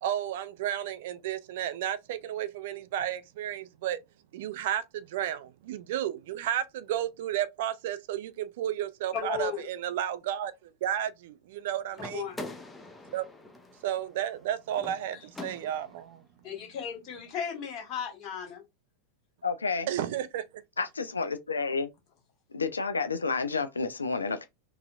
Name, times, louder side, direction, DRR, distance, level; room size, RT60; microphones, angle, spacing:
voice 1, 0.0-4.0 4.3-12.3 13.1-13.3 13.8-16.2 19.9-20.4, right 11 dB, 55° right, 0.4 m, -32 dB
voice 2, 9.1-9.7 12.0-12.4 15.1-15.3 16.4-18.6, left 7 dB, 35° left, 1.5 m, -35 dB
sound 1, 11.9-16.1, left 2 dB, 10° left, 0.6 m, -44 dB
voice 3, 19.4-19.8 20.8-21.9 22.5-24.4, left 4 dB, 75° left, 0.3 m, -30 dB
4.1 x 2.4 x 2.4 m
figure-of-eight pair, 90°, 0 cm